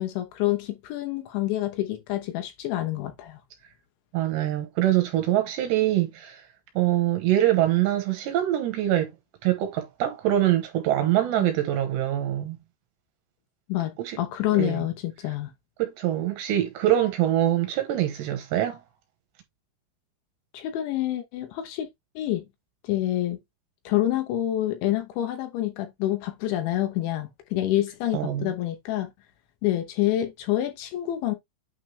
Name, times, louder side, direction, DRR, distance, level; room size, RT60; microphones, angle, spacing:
voice 1, 0.0-3.4 11.4-11.5 13.7-15.5 20.5-21.9 22.2-22.5 22.8-23.4 23.9-29.1 29.6-31.4, left 14 dB, 75° left, 3.2 m, -27 dB
voice 2, 4.1-6.4 6.8-9.1 9.4-12.6 14.0-14.2 14.5-14.8 15.8-18.8 28.1-28.5, right 13 dB, 75° right, 2.9 m, -24 dB
8.9 x 3.8 x 3.3 m
omnidirectional pair, 5.7 m